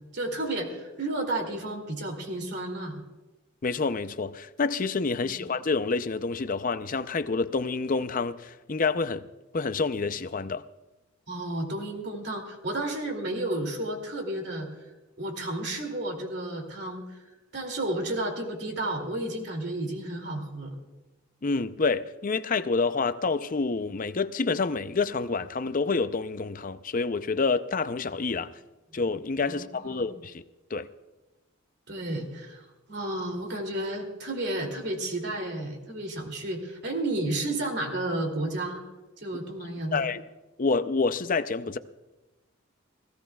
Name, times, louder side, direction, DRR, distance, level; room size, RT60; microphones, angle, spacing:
voice 1, 0.0-3.0 5.2-5.4 11.3-14.7 15.2-17.2 17.5-20.8 29.5-30.1 31.9-32.6 32.9-38.8 39.2-40.0, right 1 dB, 55° right, 2.7 m, -32 dB
voice 2, 3.6-9.3 9.5-10.6 21.4-28.5 28.9-30.4 30.7-30.9 39.9-40.2 40.6-41.8, left 4 dB, 40° left, 0.5 m, -28 dB
28.5 x 16.5 x 2.4 m
head